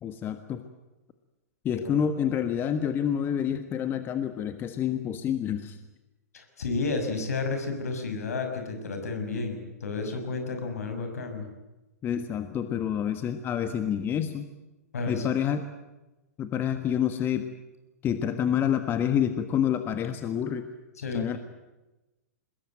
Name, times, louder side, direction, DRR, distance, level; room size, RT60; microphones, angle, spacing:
voice 1, 0.0-0.6 1.6-5.8 12.0-14.5 15.1-15.7 16.4-17.5 18.0-20.7 21.1-21.4, left 9 dB, 25° left, 9 dB, 1.4 m, -28 dB
voice 2, 6.3-11.4 14.9-15.2 21.0-21.4, left 3 dB, 70° left, 5 dB, 5.9 m, -31 dB
24.5 x 21.0 x 9.2 m, 1.0 s
figure-of-eight pair, 110°, 9 cm